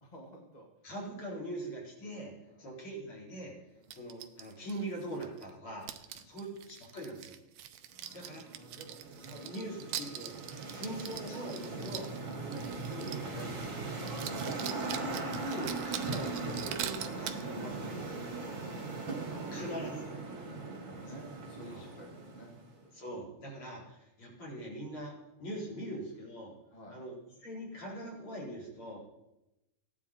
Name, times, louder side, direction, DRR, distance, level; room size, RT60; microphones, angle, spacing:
voice 1, 0.0-0.7 2.5-2.6 3.8-4.0 6.0-6.3 7.9-9.5 10.6-10.8 12.2-12.4 15.9-16.1 18.4-19.8 20.4-22.6 22.8-23.2 26.7-27.0, equal, 20° left, 0 dB, 1.5 m, -53 dB
voice 2, 0.8-3.5 3.9-5.9 6.2-7.3 8.1-8.6 9.2-12.1 12.4-13.9 14.5-18.2 19.5-20.2 21.7-21.8 22.9-26.6 26.9-29.0, right 1 dB, 45° left, -4 dB, 4.8 m, -43 dB
sound 1, 3.9-5.5 5.8-13.3 13.6-13.7 14.0-17.4, right 11 dB, 80° right, 2.1 m, -43 dB
sound 2, 8.2-22.7, right 3 dB, 30° right, 2.0 m, -39 dB
16.5 x 10.5 x 4.3 m, 0.93 s
omnidirectional pair, 3.4 m